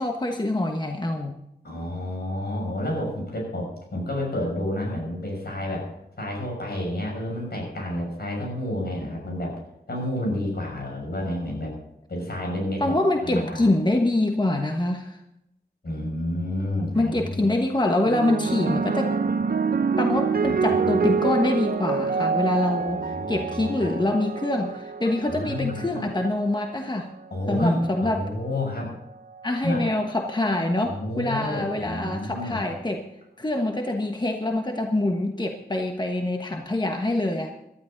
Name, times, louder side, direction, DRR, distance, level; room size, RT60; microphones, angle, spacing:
voice 1, 0.0-1.4 12.8-15.2 16.9-19.2 20.0-27.1 27.5-28.2 29.4-33.1 33.4-37.5, left 1 dB, 25° left, 3 dB, 1.2 m, -25 dB
voice 2, 1.6-5.9 6.2-9.6 9.9-11.7 12.1-13.0 13.2-13.7 15.8-17.5 20.4-21.0 22.9-23.9 25.3-26.1 27.3-29.0 29.6-29.8 30.8-32.6, left 1 dB, 70° left, -1 dB, 6.8 m, -30 dB
sound 1, 18.1-26.6 27.5-27.9, right 5 dB, 60° right, 0.7 m, -26 dB
18.0 x 12.5 x 4.0 m, 0.82 s
wide cardioid pair, 75°, 17 cm